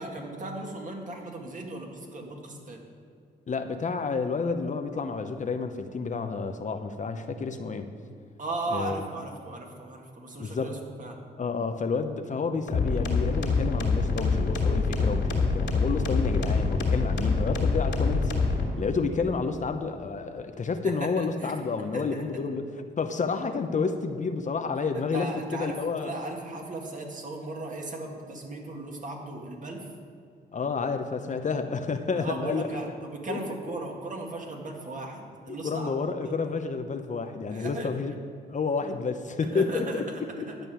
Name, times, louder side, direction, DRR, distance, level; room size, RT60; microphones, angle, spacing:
voice 1, 0.0-2.8 8.4-11.2 20.8-21.5 21.9-22.2 25.1-29.9 32.1-35.9 36.2-36.3 37.5-37.9 39.4-40.5, right 2 dB, 45° right, 0 dB, 2.1 m, -37 dB
voice 2, 3.5-7.9 8.7-9.0 10.4-10.8 11.4-18.3 18.8-26.1 30.5-32.7 33.3-33.4 33.7-33.8 35.5-38.1 38.5-40.0 40.4-40.5, left 4 dB, 45° left, 7 dB, 0.8 m, -30 dB
sound 1, 12.7-18.7, left 4 dB, 75° left, 2.5 m, -25 dB
11.5 x 5.3 x 8.7 m, 2.3 s
cardioid pair, 75°, 18 cm